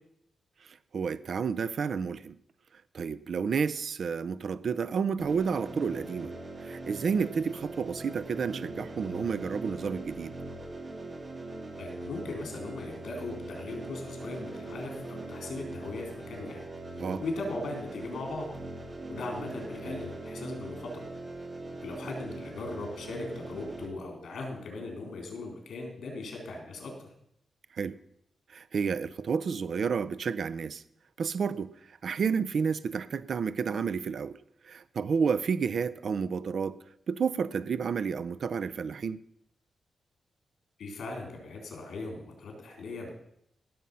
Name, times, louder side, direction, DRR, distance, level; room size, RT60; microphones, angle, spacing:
voice 1, 0.7-2.4 2.9-6.3 6.6-10.3 17.0-17.2 27.7-28.0 28.5-30.8 31.2-31.7 32.0-34.4 34.6-36.8 37.1-39.2, right 6 dB, 55° right, 15 dB, 0.5 m, -30 dB
sound 1, 5.2-23.9, right 2 dB, 25° right, 2.0 m, -41 dB
voice 2, 11.8-16.7 16.9-18.5 19.1-21.0 21.8-26.9 40.8-43.1, left 2 dB, 80° left, 2 dB, 3.9 m, -38 dB
17.0 x 7.1 x 5.5 m, 0.74 s
wide cardioid pair, 160°, 0 cm